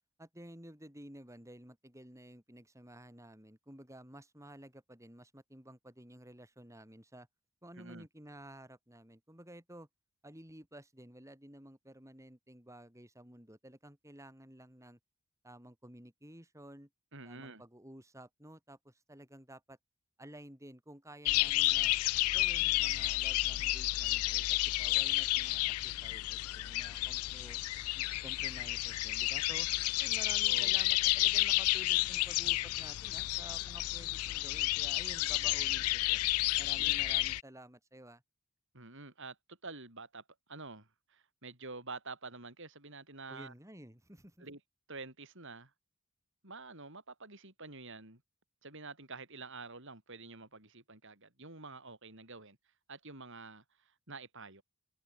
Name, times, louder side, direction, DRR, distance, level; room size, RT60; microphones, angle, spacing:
voice 1, 0.2-7.3 7.6-9.9 10.2-15.0 15.4-16.9 17.2-19.8 20.2-21.9 22.3-27.6 27.9-29.7 30.0-36.2 36.6-38.2 43.3-44.5, right 1 dB, 15° right, 6.7 m, -53 dB
voice 2, 7.8-8.1 17.1-17.6 30.4-30.8 36.8-37.0 38.7-43.5 44.4-44.6 44.9-45.7 46.4-48.2 48.6-52.6 52.9-54.6, right 3 dB, 55° right, 6.4 m, -48 dB
sound 1, 21.2-37.4, left 19 dB, 75° left, 0.3 m, -31 dB
head